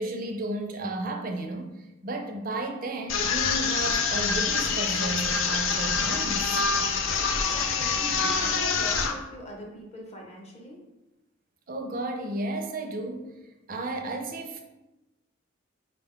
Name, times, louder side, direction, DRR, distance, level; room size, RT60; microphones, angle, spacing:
voice 1, 0.0-6.6 11.7-13.3 13.7-14.6, right 2 dB, 40° right, 4 dB, 0.5 m, -33 dB
sound 1, 3.1-9.1, left 5 dB, 75° left, 0.5 m, -26 dB
voice 2, 7.0-10.8, right 1 dB, 30° left, -1 dB, 0.7 m, -41 dB
4.8 x 2.3 x 3.6 m, 1.0 s
head